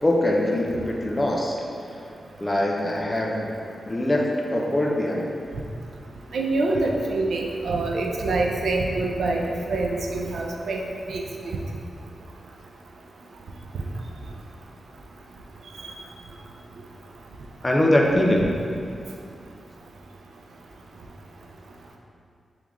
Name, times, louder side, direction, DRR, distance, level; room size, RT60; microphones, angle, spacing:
voice 1, 0.0-1.6 2.4-3.5 3.9-5.3 17.6-18.6, left 1 dB, 20° left, -1 dB, 0.4 m, -22 dB
voice 2, 6.3-10.8 11.1-11.2, right 2 dB, 80° right, 0 dB, 0.4 m, -25 dB
3.7 x 3.0 x 3.5 m, 2.4 s
wide cardioid pair, 155°, 0 cm